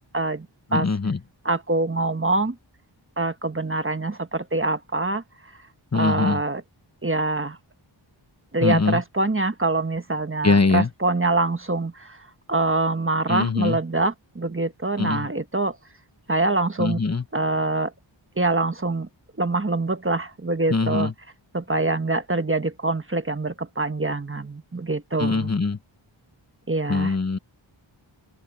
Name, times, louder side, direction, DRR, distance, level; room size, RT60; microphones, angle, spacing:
voice 1, 0.1-0.9 1.4-2.6 3.2-5.2 5.9-6.6 7.0-7.6 8.5-15.8 16.3-17.0 17.3-17.9 18.4-19.1 19.4-21.1 21.5-25.5 26.7-27.2, right 2 dB, 25° right, 1.3 m, -25 dB
voice 2, 0.7-1.2 5.9-6.4 8.6-9.0 10.4-10.9 13.3-13.8 15.0-15.3 16.8-17.2 20.7-21.1 25.2-25.8 26.9-27.4, left 4 dB, 30° left, 1.0 m, -22 dB
wide cardioid pair, 65°, 48 cm